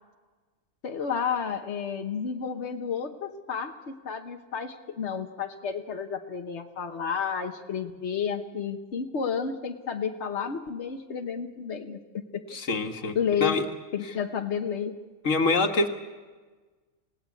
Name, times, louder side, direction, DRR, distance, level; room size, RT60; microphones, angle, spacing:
voice 1, 0.8-12.4 13.1-13.6 13.9-15.0, left 7 dB, 65° left, 4 dB, 1.4 m, -31 dB
voice 2, 12.5-13.6 15.2-15.9, left 3 dB, 90° left, 5 dB, 2.0 m, -25 dB
29.5 x 18.0 x 8.4 m, 1.4 s
omnidirectional pair, 1.3 m